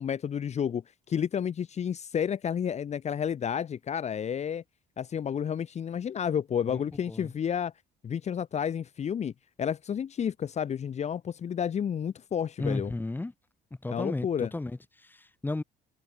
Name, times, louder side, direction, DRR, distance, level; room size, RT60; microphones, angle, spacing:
voice 1, 0.0-4.6 5.0-7.7 8.0-9.3 9.6-12.9 13.9-14.5, left 8 dB, 40° left, 1.5 m, -31 dB
voice 2, 6.7-7.3 12.6-13.3 13.8-15.6, left 2 dB, 10° left, 1.8 m, -34 dB
cardioid pair, 110°, 17 cm